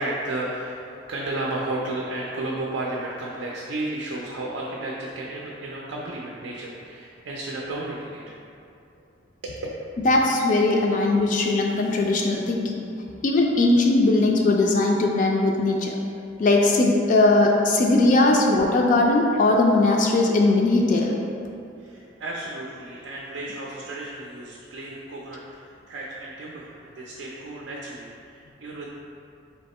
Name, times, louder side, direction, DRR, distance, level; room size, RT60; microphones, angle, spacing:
voice 1, 0.0-8.4 9.4-9.7 18.3-18.5 21.8-28.9, right 2 dB, 75° right, -3 dB, 0.5 m, -33 dB
voice 2, 10.1-12.8 13.2-16.0 16.4-21.2, left 2 dB, 40° left, 0 dB, 0.3 m, -19 dB
3.5 x 2.8 x 4.1 m, 2.6 s
head